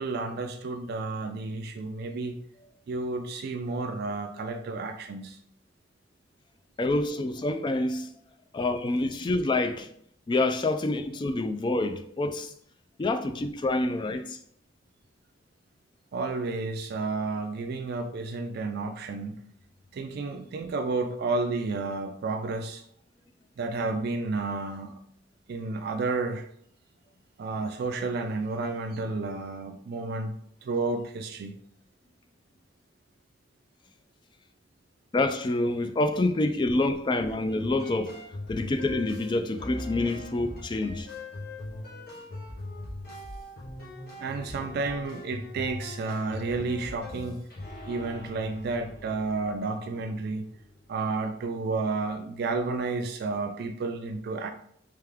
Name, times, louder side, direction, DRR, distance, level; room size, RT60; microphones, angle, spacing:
voice 1, 0.0-2.4 2.9-5.4 16.1-19.4 19.9-22.8 23.6-25.0 25.5-26.5 27.4-30.3 30.6-31.5 44.2-47.4 47.9-50.5 50.9-54.5, right 3 dB, 55° right, 0.3 m, -31 dB
voice 2, 6.8-8.1 8.5-9.9 10.3-12.5 13.0-14.4 35.1-38.2 38.5-41.1, left 2 dB, 25° left, 0.3 m, -27 dB
sound 1, 37.5-50.8, left 2 dB, 55° left, 1.3 m, -41 dB
3.4 x 3.3 x 3.5 m
head